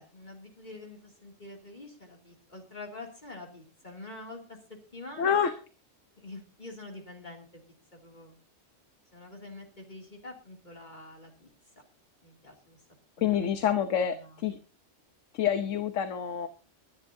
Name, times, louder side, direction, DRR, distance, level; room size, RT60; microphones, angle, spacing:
voice 1, 0.0-4.6 4.9-5.4 6.2-7.6 7.9-8.4 9.1-11.5 12.2-12.8 13.2-13.5 14.1-14.4, left 2 dB, 40° left, 1 dB, 2.8 m, -46 dB
voice 2, 5.2-5.5 13.2-14.6 15.3-16.5, left 8 dB, 85° left, 9 dB, 1.3 m, -27 dB
23.0 x 10.5 x 2.7 m, 0.34 s
omnidirectional pair, 1.3 m